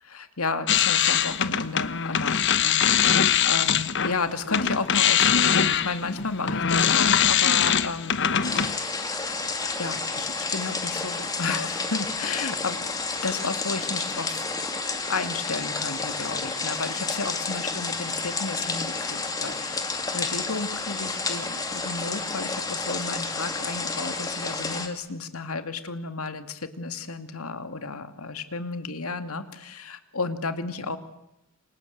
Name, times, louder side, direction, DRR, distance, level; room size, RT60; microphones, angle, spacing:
voice 1, 0.0-9.0 9.8-14.5 15.1-31.0, left 3 dB, 90° left, 8 dB, 2.3 m, -33 dB
sound 1, 0.7-4.2 4.5-8.8, left 8 dB, 55° left, 1.2 m, -22 dB
sound 2, 8.4-24.9, left 3 dB, 15° left, 2.4 m, -30 dB
28.5 x 26.0 x 8.1 m, 0.88 s
head